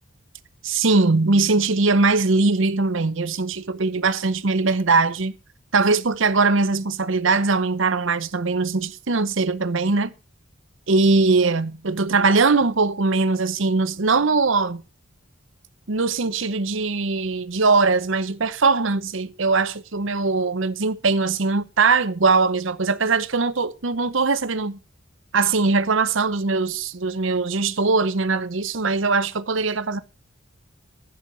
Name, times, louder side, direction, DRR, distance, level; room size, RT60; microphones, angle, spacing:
voice 1, 0.6-5.3 5.7-10.1 10.9-14.8 15.9-24.8 25.3-30.0, right 3 dB, 65° right, 0.9 m, -21 dB
11.0 x 7.2 x 6.2 m
head